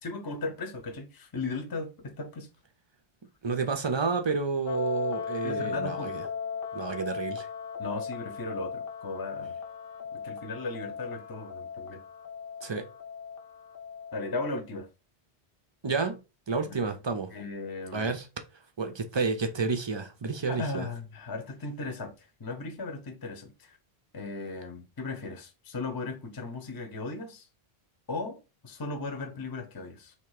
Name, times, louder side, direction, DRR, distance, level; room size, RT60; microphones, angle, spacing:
voice 1, 0.0-2.5 5.4-6.2 7.8-9.6 10.1-12.0 14.1-14.9 16.6-16.9 17.3-18.1 20.5-23.8 24.1-27.5 28.1-30.1, left 3 dB, 25° left, 0.7 m, -37 dB
voice 2, 3.4-6.2 6.7-7.5 12.6-12.8 15.8-17.3 17.9-18.3 18.8-20.9, right 4 dB, 45° right, 0.4 m, -30 dB
sound 1, 4.7-14.3, left 6 dB, 60° left, 0.8 m, -37 dB
3.4 x 3.0 x 4.7 m
omnidirectional pair, 1.1 m